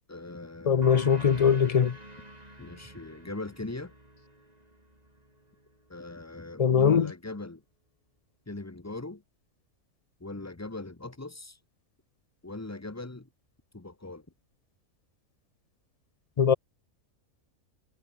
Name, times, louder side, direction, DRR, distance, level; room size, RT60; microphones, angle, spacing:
voice 1, 0.1-1.0 2.6-3.9 5.9-7.6 8.5-9.2 10.2-11.6 12.4-13.3 13.7-14.3, left 2 dB, 10° left, 1.0 m, -40 dB
voice 2, 0.7-2.0 6.6-7.1 16.4-16.5, left 7 dB, 80° left, 0.3 m, -21 dB
sound 1, 0.8-6.0, right 1 dB, 25° right, 6.5 m, -47 dB
omnidirectional pair, 1.5 m